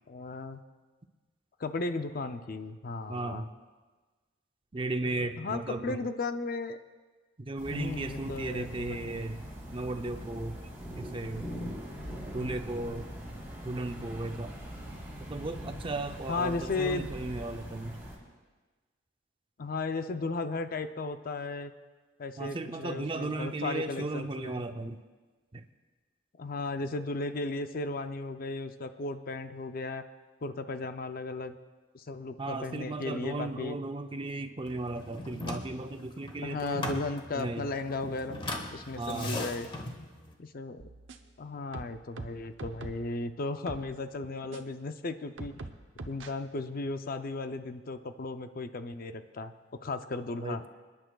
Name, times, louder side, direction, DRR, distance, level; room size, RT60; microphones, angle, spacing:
voice 1, 0.1-0.6 1.6-3.5 5.0-6.8 7.7-9.0 16.3-17.1 19.6-21.7 22.2-24.6 26.4-30.0 30.4-31.6 31.9-33.8 36.4-38.4 38.7-39.7 40.4-40.8 41.4-45.5 46.1-50.6, left 3 dB, 50° left, 9 dB, 0.5 m, -35 dB
voice 2, 3.1-3.5 4.7-6.0 7.4-9.5 9.7-10.6 11.0-11.6 12.3-13.1 13.6-14.5 15.2-18.0 22.4-25.0 25.5-25.6 32.4-37.0 37.4-37.7 39.0-39.4 50.4-50.6, right 2 dB, 25° right, 7 dB, 0.5 m, -35 dB
sound 1, 7.6-18.2, equal, 10° right, 3.4 m, -42 dB
sound 2, 34.7-40.3, left 2 dB, 25° left, 1.1 m, -40 dB
sound 3, 40.8-41.4 41.7-43.1 43.7-43.9 44.5-44.6 45.4-46.3, right 2 dB, 80° right, 0.8 m, -43 dB
28.0 x 10.0 x 2.3 m, 1.3 s
head